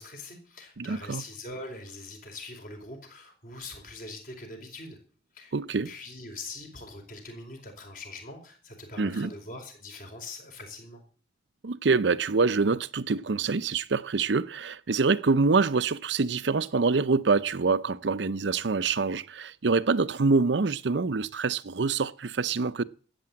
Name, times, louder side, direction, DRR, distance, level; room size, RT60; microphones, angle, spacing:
voice 1, 0.0-5.0 5.3-5.5 5.8-11.0, left 2 dB, 45° left, 4.6 m, -42 dB
voice 2, 0.8-1.2 5.5-5.9 9.0-9.3 11.6-22.8, right 4 dB, 75° right, 0.6 m, -25 dB
13.5 x 8.7 x 8.6 m
head